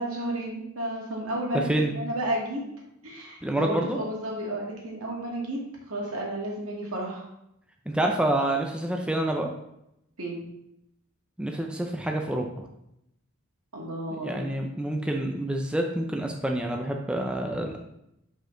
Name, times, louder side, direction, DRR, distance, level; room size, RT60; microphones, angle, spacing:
voice 1, 0.0-2.6 3.0-5.6 5.9-7.3 10.2-10.4 13.7-14.5, right 1 dB, 80° right, -3 dB, 2.1 m, -32 dB
voice 2, 3.4-4.0 7.9-9.5 11.4-12.6 14.2-17.8, right 1 dB, 5° right, 1 dB, 0.5 m, -27 dB
6.3 x 5.2 x 3.8 m, 0.81 s
head